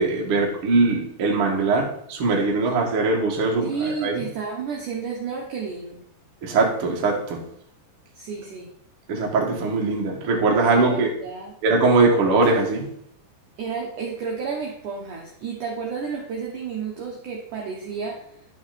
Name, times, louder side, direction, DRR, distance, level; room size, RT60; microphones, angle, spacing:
voice 1, 0.0-4.2 6.4-7.4 9.1-11.1 11.6-12.9, right 3 dB, 45° right, -1 dB, 1.9 m, -21 dB
voice 2, 3.6-6.0 8.1-8.7 10.7-11.5 13.6-18.2, right 5 dB, 65° right, -1 dB, 2.1 m, -31 dB
11.5 x 5.9 x 4.3 m, 0.69 s
omnidirectional pair, 5.2 m